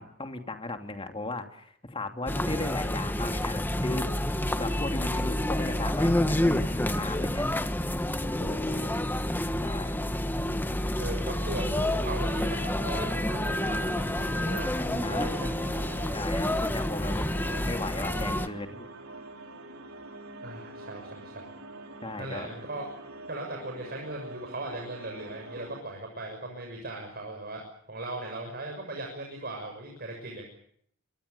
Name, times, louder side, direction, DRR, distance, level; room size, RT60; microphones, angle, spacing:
voice 1, 0.0-7.5 8.2-8.9 9.6-10.1 15.0-15.3 16.1-17.3 17.6-18.8 22.0-22.5, left 2 dB, 25° left, 5 dB, 2.7 m, -37 dB
sound 1, 2.3-18.5, left 1 dB, 10° left, 1.3 m, -29 dB
voice 2, 8.4-8.8 11.0-15.5 20.4-21.5 22.2-22.9 23.3-27.6 27.9-30.5, right 2 dB, 50° right, 2 dB, 6.8 m, -38 dB
sound 2, 11.7-25.8, right 2 dB, 85° right, 4.1 m, -45 dB
26.5 x 23.0 x 6.9 m, 0.67 s
head